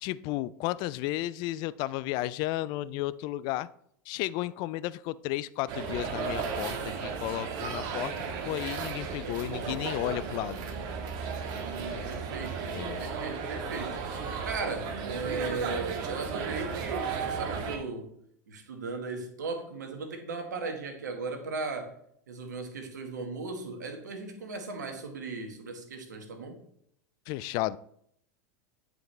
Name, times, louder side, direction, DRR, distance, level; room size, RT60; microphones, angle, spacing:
voice 1, 0.0-3.7 4.1-8.1 8.4-10.6 12.8-13.0 27.3-27.8, left 16 dB, 50° left, 0.3 m, -33 dB
sound 1, 5.7-17.8, right 5 dB, 50° right, 1.4 m, -34 dB
voice 2, 11.5-18.1 18.5-21.9 22.3-26.6, right 3 dB, 85° right, 1.4 m, -37 dB
9.2 x 4.9 x 3.2 m
hypercardioid pair, 95°, 9 cm